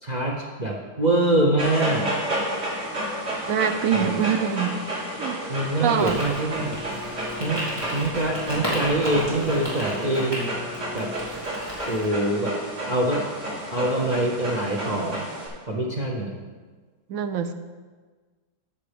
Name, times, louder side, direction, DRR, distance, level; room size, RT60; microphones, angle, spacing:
voice 1, 0.0-2.1 3.9-4.1 5.5-6.8 7.4-7.6 7.9-10.5 10.9-11.1 11.9-12.6 12.9-13.3 13.7-15.3 15.7-16.4, right 1 dB, 40° right, -1 dB, 0.6 m, -24 dB
Dog, 1.6-15.5, right 1 dB, 85° right, 3.3 m, -31 dB
voice 2, 3.5-4.8 5.2-5.4 5.8-6.2 17.1-17.5, right 8 dB, 70° right, 9 dB, 0.9 m, -24 dB
sound 1, 6.0-12.1, equal, 15° right, 2.7 m, -34 dB
Bowed string instrument, 6.4-11.8, left 3 dB, 35° left, 0.6 m, -42 dB
14.0 x 6.7 x 3.4 m, 1.4 s
omnidirectional pair, 1.8 m